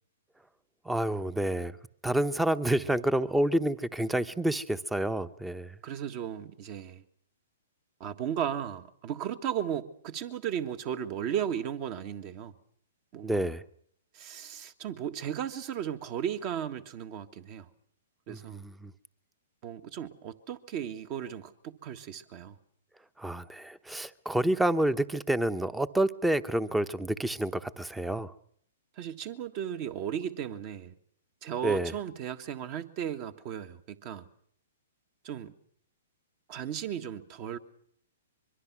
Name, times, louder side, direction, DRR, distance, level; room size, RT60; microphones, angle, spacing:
voice 1, 0.8-1.7 2.0-5.8 13.2-13.6 18.3-18.9 23.2-28.3 31.6-31.9, right 1 dB, 5° right, 0.9 m, -29 dB
voice 2, 5.8-7.0 8.0-12.5 13.1-13.5 14.1-17.7 18.3-18.7 19.6-22.6 29.0-30.9 31.4-34.3 35.2-35.5 36.5-37.6, right 9 dB, 40° right, 1.6 m, -35 dB
24.5 x 23.0 x 6.1 m
hypercardioid pair, 120°, 0 cm